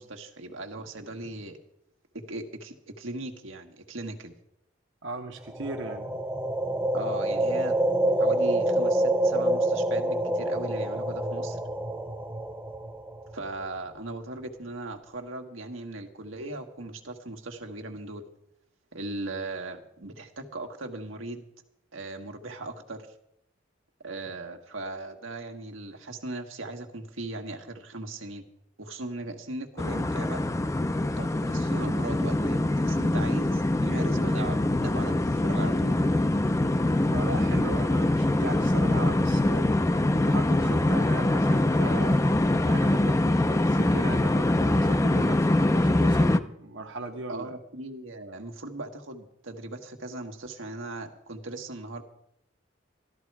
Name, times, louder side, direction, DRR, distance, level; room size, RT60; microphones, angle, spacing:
voice 1, 0.0-1.6 2.1-4.3 6.9-7.7 8.2-11.6 13.3-18.2 18.9-21.5 21.9-23.1 24.0-28.4 28.8-30.4 31.2-34.6 34.8-35.9 47.3-52.0, right 2 dB, 85° right, 4 dB, 1.5 m, -38 dB
voice 2, 5.0-6.4 37.1-39.7 40.1-42.2 42.6-47.6, right 2 dB, 65° right, 2 dB, 1.1 m, -38 dB
sound 1, 5.5-13.5, right 1 dB, 10° right, 0.8 m, -27 dB
sound 2, 29.8-46.4, left 1 dB, 15° left, 0.4 m, -24 dB
13.0 x 13.0 x 4.7 m, 0.78 s
head